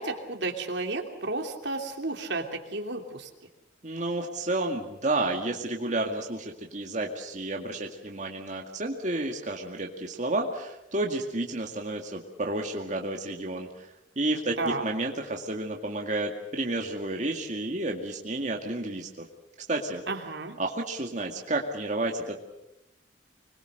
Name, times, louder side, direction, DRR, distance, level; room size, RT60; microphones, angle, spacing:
voice 1, 0.0-3.3 14.6-14.8 20.1-20.6, right 2 dB, 75° right, 4 dB, 2.9 m, -32 dB
voice 2, 3.8-13.9 14.2-19.3 19.7-20.0 20.6-22.4, right 2 dB, 40° right, 1 dB, 2.1 m, -31 dB
25.5 x 21.5 x 6.7 m, 0.92 s
head